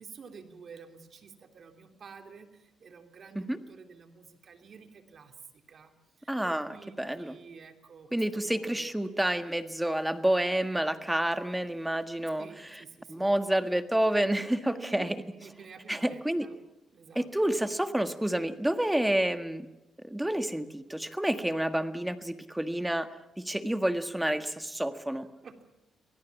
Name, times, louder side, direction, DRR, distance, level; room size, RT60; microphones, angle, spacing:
voice 1, 0.0-5.9 6.2-8.9 12.2-13.3 14.6-16.6 16.9-17.3 25.2-25.6, right 5 dB, 50° right, 6 dB, 3.0 m, -50 dB
voice 2, 6.3-7.3 8.1-12.5 13.1-15.2 15.9-16.5 17.1-19.7 20.0-23.1 23.4-25.3, right 1 dB, 5° right, 9 dB, 1.6 m, -29 dB
25.0 x 17.5 x 7.3 m, 0.94 s
cardioid pair, 90°, 0 cm